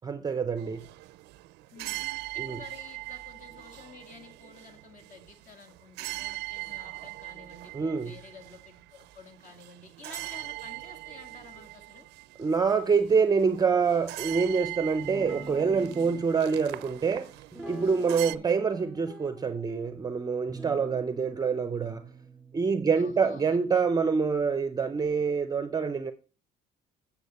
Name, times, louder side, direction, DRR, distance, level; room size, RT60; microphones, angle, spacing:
voice 1, 0.0-0.9 2.4-2.6 7.7-8.1 12.4-17.3 17.7-22.0 22.5-26.1, right 5 dB, 20° right, 0.5 m, -26 dB
sound 1, 0.6-18.4, right 20 dB, 80° right, 0.4 m, -41 dB
voice 2, 1.7-2.1 2.3-12.1 18.3-18.6 23.0-23.9, left 4 dB, 50° left, 2.0 m, -51 dB
Guitar, 15.0-16.2 17.5-18.4 18.7-19.9 20.5-24.0, right 2 dB, ahead, 1.8 m, -44 dB
8.2 x 7.1 x 4.1 m
cardioid pair, 110°, 17 cm